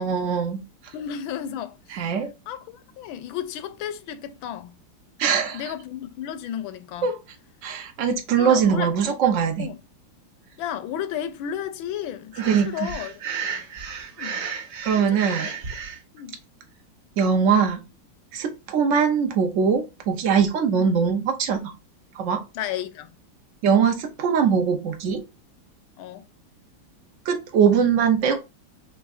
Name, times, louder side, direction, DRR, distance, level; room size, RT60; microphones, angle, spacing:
voice 1, 0.0-0.9 1.9-2.3 5.2-5.6 7.0-7.2 7.6-9.7 12.4-12.9 14.8-15.5 17.2-17.8 18.3-21.6 22.1-22.4 23.6-25.2 27.3-28.4, right 6 dB, 80° right, 0.6 m, -21 dB
voice 2, 0.9-2.2 2.5-4.8 5.5-7.1 8.4-8.9 9.6-9.8 10.6-13.6 14.2-14.5 15.0-15.6 16.1-16.4 20.8-20.9 22.5-23.1 26.0-26.2, left 10 dB, 80° left, 1.4 m, -33 dB
Breathing, 12.3-16.0, right 6 dB, 55° right, 1.0 m, -33 dB
6.6 x 2.6 x 2.4 m
omnidirectional pair, 2.2 m